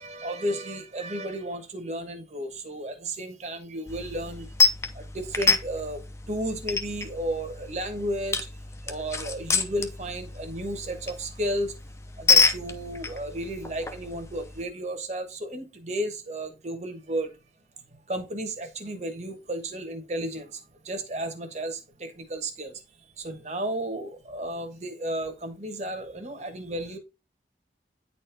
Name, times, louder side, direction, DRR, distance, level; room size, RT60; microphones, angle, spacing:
voice 1, 0.0-4.5 4.9-8.5 8.8-11.8 12.2-17.3 18.1-27.0, right 1 dB, 40° right, 1.3 m, -33 dB
sound 1, 3.9-14.6, left 4 dB, 15° left, 0.6 m, -28 dB
9.5 x 4.3 x 3.4 m
head